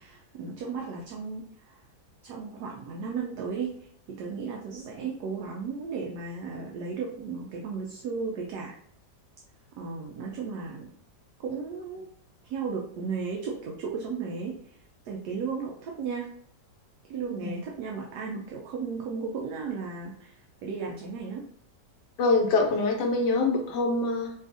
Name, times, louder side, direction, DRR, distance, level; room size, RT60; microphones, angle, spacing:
voice 1, 0.0-1.8 2.2-8.8 9.8-10.9 11.4-12.1 12.5-14.7 15.0-16.3 17.1-21.5, right 5 dB, 75° right, -1 dB, 1.2 m, -35 dB
voice 2, 22.2-24.3, left 3 dB, 75° left, 2 dB, 1.3 m, -25 dB
5.1 x 2.4 x 2.5 m, 0.64 s
omnidirectional pair, 1.8 m